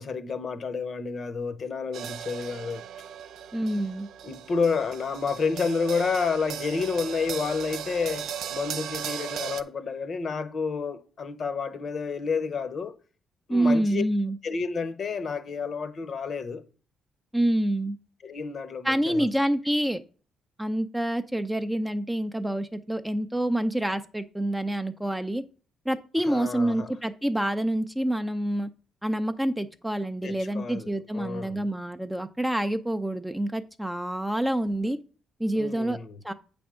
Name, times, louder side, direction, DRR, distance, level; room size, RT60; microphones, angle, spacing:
voice 1, 0.0-2.8 4.2-13.0 13.5-14.0 14.4-16.6 18.2-19.3 26.2-26.9 30.2-31.7 35.5-36.2, left 5 dB, 50° left, 0.9 m, -30 dB
sound 1, 1.9-9.6, right 9 dB, 75° right, 0.5 m, -37 dB
voice 2, 3.5-4.1 13.5-14.4 17.3-18.0 18.8-20.0 20.6-25.4 25.9-28.7 29.0-35.0 35.4-36.0 36.2-36.3, right 1 dB, 5° right, 0.6 m, -27 dB
8.1 x 3.5 x 6.3 m
cardioid pair, 90°, 0 cm